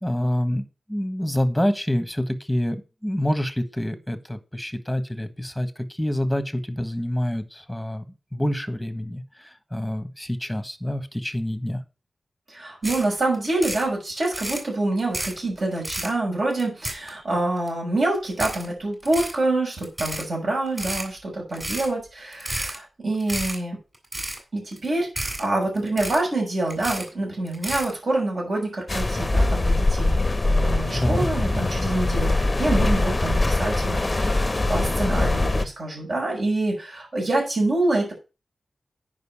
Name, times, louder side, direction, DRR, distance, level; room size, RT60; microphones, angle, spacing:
voice 1, 0.0-5.7 6.0-8.1 8.3-11.8 31.0-31.3, left 1 dB, ahead, 9 dB, 1.4 m, -27 dB
voice 2, 12.5-23.8 24.5-38.1, right 2 dB, 55° right, -1 dB, 6.3 m, -26 dB
sound 1, 12.8-13.1 13.3-13.8 14.2-14.6 15.0-15.4 15.8-16.1 16.5-17.3 17.7-17.8 18.3-18.7 19.0-19.4 19.8-20.3 20.7-21.1 21.5-21.9 22.3-22.8 23.1-23.6 23.9-24.4 24.7-24.9 25.2-25.4 25.8-26.3 26.7-27.1 27.5-27.9, right 1 dB, 20° right, 3.5 m, -31 dB
sound 2, 28.9-35.7, left 2 dB, 25° left, 0.9 m, -22 dB
9.3 x 5.4 x 5.6 m, 0.30 s
wide cardioid pair, 95°, 0 cm